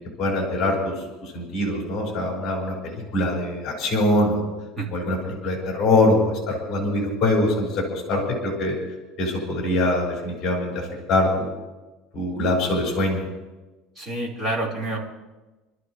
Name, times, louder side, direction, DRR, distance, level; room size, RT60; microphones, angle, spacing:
voice 1, 0.2-0.9 1.2-4.4 4.9-8.7 9.2-11.5 12.1-13.2, left 1 dB, 30° left, -2 dB, 5.6 m, -23 dB
voice 2, 14.0-15.0, right 1 dB, 15° right, -5 dB, 4.6 m, -27 dB
28.0 x 13.0 x 3.2 m, 1.1 s
cardioid pair, 155°, 0 cm